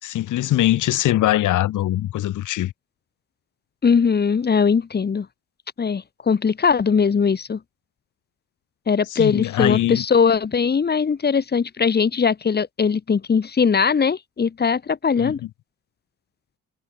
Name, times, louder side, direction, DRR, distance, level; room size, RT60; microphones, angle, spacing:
voice 1, 0.0-2.7 9.1-10.0 15.2-15.3, left 14 dB, 80° left, 3.0 m, -22 dB
voice 2, 3.8-5.3 5.8-7.6 8.9-15.4, left 6 dB, 35° left, 1.4 m, -20 dB
cardioid pair, 90°, 30 cm